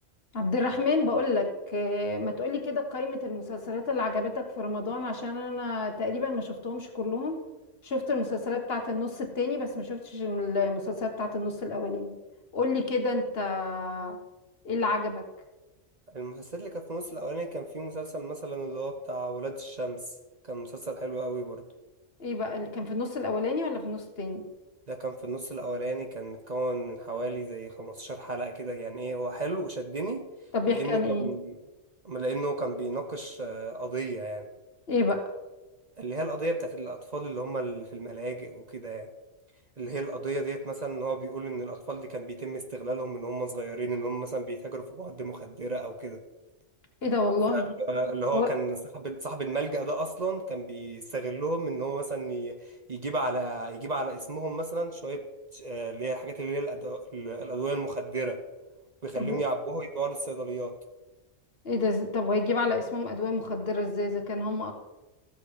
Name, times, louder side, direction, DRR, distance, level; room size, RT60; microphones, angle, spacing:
voice 1, 0.3-7.4 7.8-12.1 12.5-14.2 14.6-15.3 22.2-24.4 30.5-31.3 34.9-35.2 47.0-47.7 48.3-48.5 59.1-59.4 61.6-64.7, left 3 dB, 55° left, 4 dB, 1.6 m, -29 dB
voice 2, 16.1-20.0 20.5-21.6 24.9-30.3 30.7-31.6 32.0-34.5 36.0-39.1 39.8-46.2 47.5-55.3 55.5-58.4 59.0-60.8, right 2 dB, 40° right, 5 dB, 0.9 m, -33 dB
14.5 x 7.0 x 5.0 m, 1.1 s
omnidirectional pair, 1.2 m